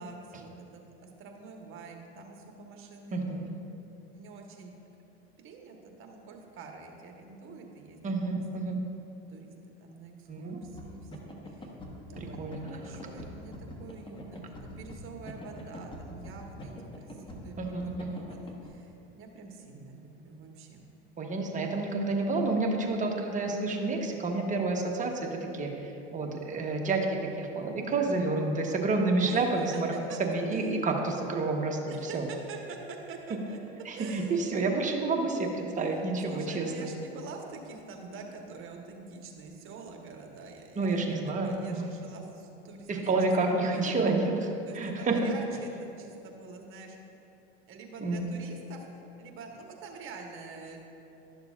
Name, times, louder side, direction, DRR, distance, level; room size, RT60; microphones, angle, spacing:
voice 1, 0.0-3.2 4.1-4.7 5.4-8.8 9.3-17.6 18.1-20.8 29.3-29.4 29.7-30.2 31.9-33.6 33.9-34.4 35.8-43.1 43.5-44.2 44.6-47.0 47.7-50.8, right 4 dB, 45° right, 2 dB, 1.2 m, -46 dB
voice 2, 3.1-3.5 8.0-8.8 10.3-10.6 12.2-12.7 17.6-18.1 21.2-29.9 30.2-32.2 33.8-36.9 40.8-41.9 42.9-44.5 44.7-45.3 48.0-48.3, right 3 dB, 25° right, 1 dB, 1.0 m, -29 dB
sound 1, 10.6-18.7, left 1 dB, 15° left, 1.1 m, -44 dB
12.0 x 6.5 x 2.4 m, 2.9 s
supercardioid pair, 100°, 30 cm